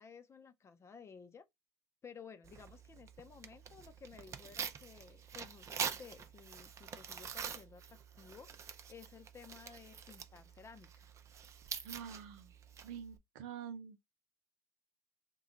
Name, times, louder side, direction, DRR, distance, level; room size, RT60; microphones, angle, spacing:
voice 1, 0.0-1.5 2.0-11.1, left 6 dB, 35° left, 0.7 m, -55 dB
Tearing, 2.4-13.2, right 7 dB, 40° right, 0.6 m, -46 dB
voice 2, 11.8-12.5 12.8-14.0, right 8 dB, 75° right, 0.7 m, -47 dB
3.0 x 2.3 x 3.8 m
hypercardioid pair, 80°, 8 cm